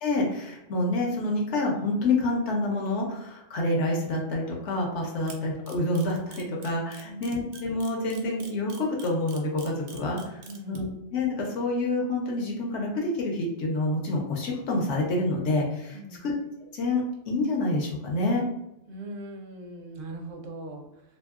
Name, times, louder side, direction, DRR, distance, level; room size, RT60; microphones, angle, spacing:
voice 1, 0.0-16.3 16.7-18.4, left 2 dB, 70° left, -1 dB, 0.9 m, -28 dB
Camera, 5.3-10.8, right 5 dB, 85° right, 0.9 m, -46 dB
voice 2, 7.0-7.4 10.4-10.9 15.9-16.3 18.9-21.0, right 1 dB, 60° right, 3 dB, 0.6 m, -41 dB
2.6 x 2.6 x 2.4 m, 0.86 s
omnidirectional pair, 1.3 m